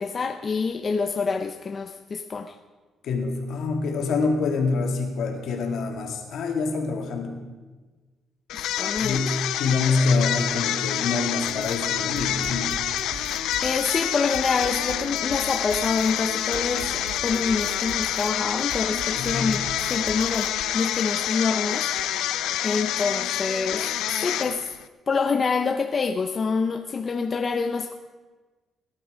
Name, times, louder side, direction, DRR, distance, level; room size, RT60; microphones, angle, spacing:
voice 1, 0.0-2.6 8.5-9.2 13.1-19.6 19.9-22.3 22.6-24.7 25.1-27.9, left 4 dB, 30° left, 6 dB, 0.6 m, -27 dB
voice 2, 3.0-7.4 9.0-12.8 19.1-19.6, left 4 dB, 70° left, 3 dB, 2.3 m, -26 dB
sound 1, 8.5-24.8, left 12 dB, 90° left, 0.6 m, -27 dB
sound 2, 11.4-20.7, right 7 dB, 85° right, 1.2 m, -41 dB
17.5 x 11.0 x 5.1 m, 1.3 s
cardioid pair, 135°, 0 cm